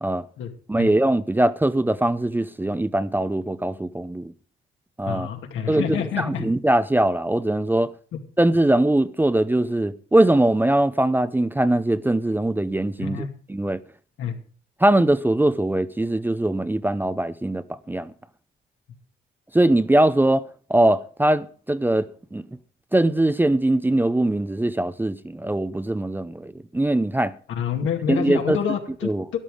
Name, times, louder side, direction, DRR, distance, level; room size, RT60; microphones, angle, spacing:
voice 1, 0.7-4.3 5.0-5.3 5.7-7.9 8.4-13.8 14.8-18.1 19.5-22.4 22.9-27.3 28.1-28.6 29.0-29.2, right 1 dB, 10° right, 0.6 m, -21 dB
voice 2, 5.1-6.5 8.1-8.2 13.0-13.3 14.2-14.4 27.5-29.4, left 8 dB, 80° left, 2.4 m, -28 dB
13.0 x 11.0 x 5.0 m
cardioid pair, 90°, 20 cm